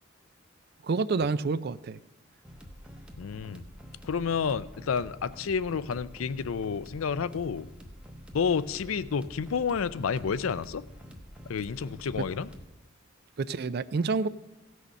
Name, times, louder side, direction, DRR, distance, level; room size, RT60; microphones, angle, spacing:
voice 1, 0.8-2.0 13.4-14.3, right 4 dB, 50° right, 17 dB, 0.4 m, -28 dB
sound 1, 2.4-12.7, equal, 5° right, 0.9 m, -47 dB
voice 2, 3.2-3.6 4.0-7.7 8.3-10.8 11.5-12.5, left 6 dB, 85° left, 16 dB, 0.5 m, -30 dB
16.5 x 6.4 x 5.3 m, 1.0 s
head